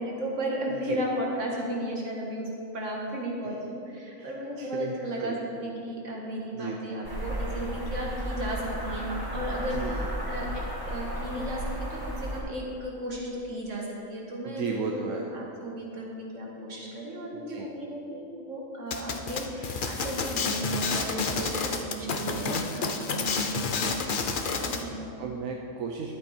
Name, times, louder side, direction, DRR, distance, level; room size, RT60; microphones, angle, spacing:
voice 1, 0.0-15.1 15.3-24.2 24.6-25.2, right 1 dB, 65° right, -2 dB, 2.1 m, -34 dB
voice 2, 4.6-4.9 5.2-5.4 6.6-6.8 9.7-10.3 14.4-15.2 17.3-17.7 24.4-24.5 25.2-26.2, right 5 dB, 90° right, 1 dB, 1.1 m, -35 dB
sound 1, 7.0-12.4, right 1 dB, 20° right, 1.1 m, -34 dB
sound 2, 18.9-24.8, left 4 dB, 50° left, 0.7 m, -30 dB
12.0 x 8.1 x 4.4 m, 2.7 s
omnidirectional pair, 1.4 m